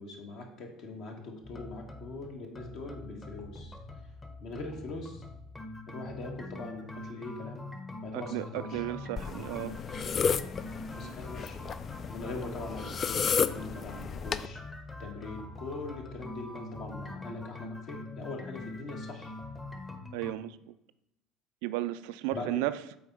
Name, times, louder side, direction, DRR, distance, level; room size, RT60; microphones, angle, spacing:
voice 1, 0.0-3.8 4.4-5.2 5.9-7.7 8.0-8.8 10.9-11.6 12.1-14.6 15.0-19.3 22.3-22.6, left 2 dB, 50° left, 2 dB, 1.6 m, -42 dB
sound 1, 1.4-20.3, left 2 dB, 15° left, 1.0 m, -44 dB
voice 2, 8.1-9.7 11.0-11.1 20.1-20.6 21.6-22.8, right 16 dB, 60° right, 13 dB, 0.3 m, -34 dB
sound 2, 9.2-14.5, left 6 dB, 35° left, 0.4 m, -33 dB
7.6 x 4.2 x 5.4 m, 0.82 s
figure-of-eight pair, 60°, 0 cm